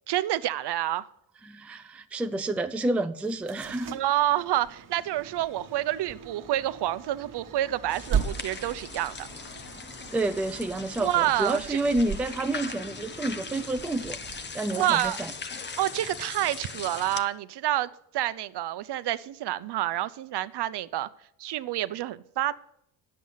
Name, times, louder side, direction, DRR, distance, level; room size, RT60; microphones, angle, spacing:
voice 1, 0.1-1.1 3.9-9.3 11.0-11.8 14.7-15.2 15.8-21.1 21.4-22.5, right 13 dB, 60° right, 14 dB, 0.7 m, -28 dB
voice 2, 1.5-4.0 10.1-14.2 14.5-15.3, right 2 dB, 5° right, 8 dB, 0.3 m, -29 dB
sound 1, 3.2-16.1, right 7 dB, 45° right, 1.3 m, -38 dB
sound 2, 7.9-17.2, left 5 dB, 25° left, 0.7 m, -40 dB
10.0 x 7.6 x 5.6 m, 0.72 s
cardioid pair, 115°, 45 cm